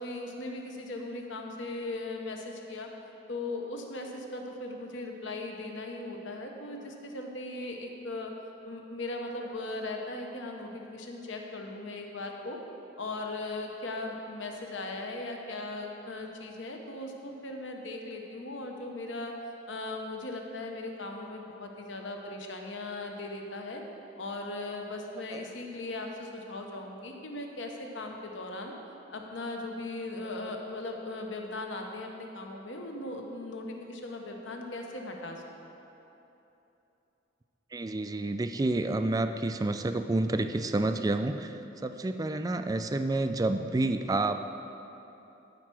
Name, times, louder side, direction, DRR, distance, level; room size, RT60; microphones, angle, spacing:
voice 1, 0.0-2.9 3.3-8.3 8.7-12.6 13.0-19.3 19.7-23.8 24.2-28.7 29.1-35.4, left 2 dB, 70° left, 2 dB, 1.0 m, -38 dB
voice 2, 37.7-44.5, right 2 dB, 20° right, 8 dB, 0.3 m, -29 dB
13.5 x 4.6 x 6.1 m, 3.0 s
head